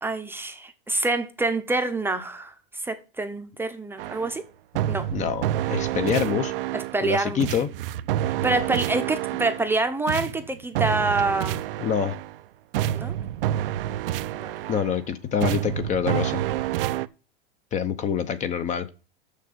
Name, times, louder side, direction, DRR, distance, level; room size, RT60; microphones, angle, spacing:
voice 1, 0.0-4.4 4.9-5.1 6.7-7.4 8.4-11.6 12.9-13.1 14.3-14.5, right 2 dB, 10° right, 0.8 m, -26 dB
sound 1, 4.0-4.3 4.8-7.1 7.4-9.7 10.1-12.4 12.7-15.0 15.4-17.1, right 12 dB, 70° right, 0.7 m, -28 dB
voice 2, 5.1-6.5 7.0-7.7 11.8-12.1 14.7-16.4 17.7-18.9, left 8 dB, 25° left, 0.8 m, -26 dB
6.7 x 6.6 x 6.7 m
supercardioid pair, 135°, 29 cm